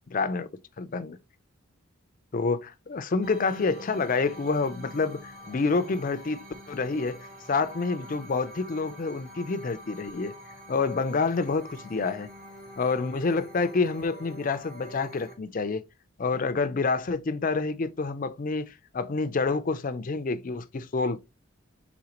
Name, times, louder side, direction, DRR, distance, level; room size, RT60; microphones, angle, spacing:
voice 1, 0.1-0.5 0.8-1.2 2.3-10.3 10.7-12.3 12.8-15.8 16.2-21.2, left 4 dB, 40° left, 0.4 m, -28 dB
sound 1, 3.2-15.4, equal, 45° right, 1.3 m, -46 dB
4.9 x 3.6 x 2.9 m
head